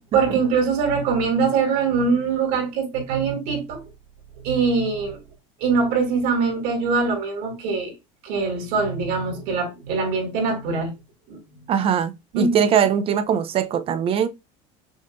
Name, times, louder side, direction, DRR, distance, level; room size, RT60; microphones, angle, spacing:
voice 1, 0.1-3.8 4.4-5.2 5.6-7.9 8.2-10.9 11.3-11.7 12.3-12.6, right 4 dB, 60° right, 2.4 m, -23 dB
voice 2, 11.7-14.3, right 8 dB, 35° right, 0.7 m, -21 dB
6.3 x 2.7 x 2.3 m
cardioid pair, 140°, 17 cm